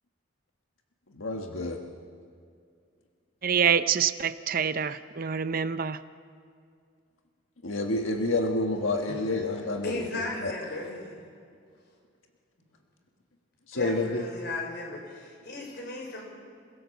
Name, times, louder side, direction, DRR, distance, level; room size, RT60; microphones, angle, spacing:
voice 1, 1.1-1.8 7.6-10.0 10.4-10.5 13.7-14.2, left 2 dB, 90° left, 3 dB, 1.6 m, -28 dB
voice 2, 3.4-6.0, right 7 dB, 45° right, 12 dB, 0.6 m, -26 dB
voice 3, 9.1-9.4 9.8-11.2 13.7-16.2, left 2 dB, 55° left, 0 dB, 5.7 m, -36 dB
29.0 x 16.5 x 7.2 m, 2.3 s
head